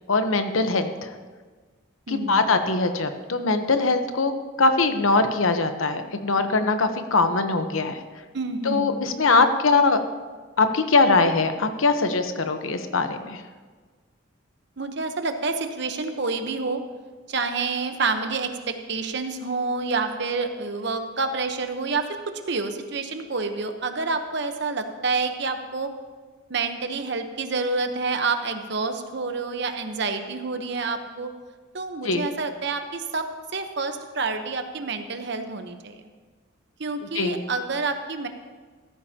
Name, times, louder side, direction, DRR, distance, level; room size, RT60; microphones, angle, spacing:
voice 1, 0.1-1.1 2.1-4.3 4.6-8.0 8.6-10.0 10.6-13.4 32.0-32.2 37.1-37.4, left 3 dB, 85° left, 8 dB, 1.0 m, -22 dB
voice 2, 2.1-2.4 8.3-9.0 14.8-16.8 17.3-22.1 22.3-25.9 26.5-31.3 31.7-33.3 33.5-36.0 36.8-38.3, right 4 dB, 55° right, 7 dB, 1.0 m, -28 dB
14.5 x 14.0 x 2.9 m, 1.4 s
head